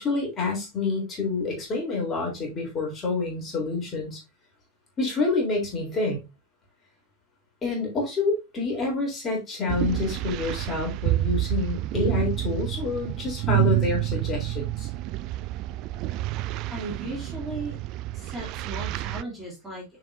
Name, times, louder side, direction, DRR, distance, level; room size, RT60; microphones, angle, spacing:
voice 1, 0.0-4.2 5.0-6.2 7.6-14.9, left 3 dB, 25° left, 3.7 m, -28 dB
sound 1, 9.7-19.2, right 16 dB, 40° right, 0.3 m, -28 dB
voice 2, 16.7-17.8 18.1-19.8, right 2 dB, 10° right, 3.1 m, -36 dB
9.1 x 5.0 x 2.7 m
figure-of-eight pair, 90°, 0 cm